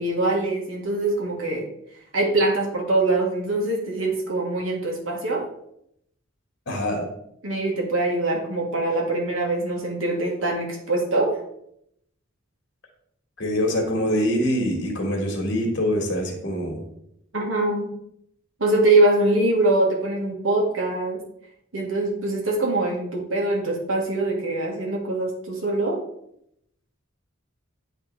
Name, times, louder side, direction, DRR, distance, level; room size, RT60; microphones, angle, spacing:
voice 1, 0.0-1.7 2.1-5.4 7.4-11.4 17.3-17.9 18.6-21.2 21.7-26.0, right 2 dB, 70° right, 0 dB, 1.6 m, -23 dB
voice 2, 6.7-7.0 13.4-16.8, equal, 60° left, 1 dB, 1.8 m, -24 dB
10.5 x 3.4 x 3.3 m, 0.74 s
head